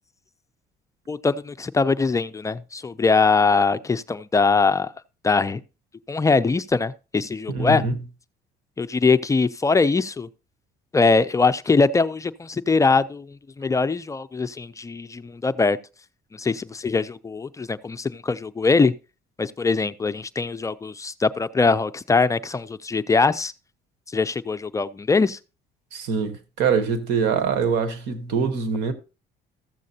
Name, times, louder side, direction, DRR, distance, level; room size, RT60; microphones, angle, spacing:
voice 1, 1.1-4.9 5.2-5.6 6.1-7.8 8.8-10.3 10.9-15.8 16.4-18.9 19.4-23.5 24.1-25.4, left 4 dB, 20° left, 0.4 m, -22 dB
voice 2, 7.5-8.0 25.9-28.9, right 5 dB, 90° right, 1.2 m, -24 dB
14.0 x 7.5 x 2.7 m
cardioid pair, 110°, 17 cm